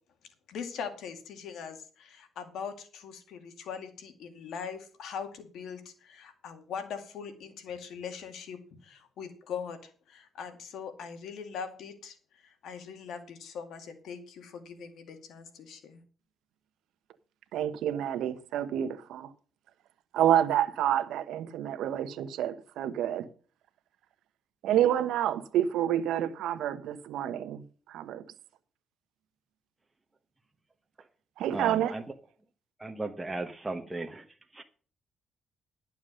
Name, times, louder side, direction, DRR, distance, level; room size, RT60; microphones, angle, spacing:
voice 1, 0.5-16.0, left 6 dB, 75° left, 2.2 m, -41 dB
voice 2, 17.5-19.3 20.1-23.3 24.6-27.6 27.9-28.2 31.4-31.9, right 11 dB, 85° right, 1.0 m, -28 dB
voice 3, 31.5-32.0 32.8-34.2 34.5-34.6, right 2 dB, 15° right, 1.2 m, -36 dB
11.5 x 7.2 x 6.3 m
cardioid pair, 90°, 0 cm